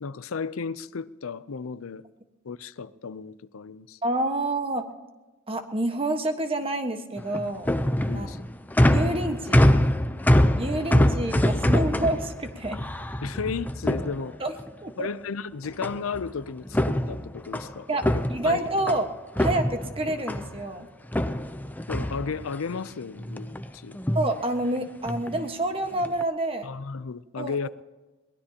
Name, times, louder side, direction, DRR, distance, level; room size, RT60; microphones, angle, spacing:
voice 1, 0.0-2.0 2.4-4.0 8.1-8.5 13.2-14.4 15.0-18.6 21.9-24.0 26.6-27.7, left 5 dB, 85° left, 0.6 m, -34 dB
voice 2, 4.0-4.8 5.5-7.7 8.1-8.3 8.9-9.7 10.6-12.8 14.4-14.5 14.8-15.1 17.9-18.0 18.3-19.1 19.4-20.9 24.1-26.7 27.4-27.5, right 1 dB, 30° right, 1.4 m, -28 dB
sound 1, 7.2-14.7 15.8-16.3 16.6-19.0 19.4-20.6 21.1-22.8 23.2-23.7 23.9-24.3 25.1-25.4 25.9-26.2, left 1 dB, 10° left, 0.6 m, -24 dB
22.5 x 19.0 x 2.9 m
head